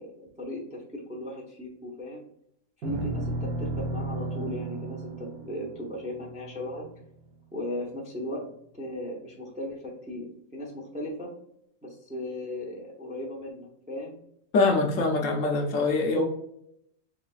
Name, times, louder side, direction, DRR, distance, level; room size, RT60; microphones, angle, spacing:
voice 1, 0.0-2.2 2.8-6.9 7.5-8.5 8.7-11.3 11.8-14.2, left 1 dB, 10° right, -2 dB, 0.5 m, -37 dB
sound 1, 2.8-7.2, right 2 dB, 90° right, 1.2 m, -34 dB
voice 2, 14.5-16.3, left 3 dB, 65° left, 1 dB, 1.1 m, -24 dB
4.1 x 3.1 x 2.4 m, 0.74 s
omnidirectional pair, 1.5 m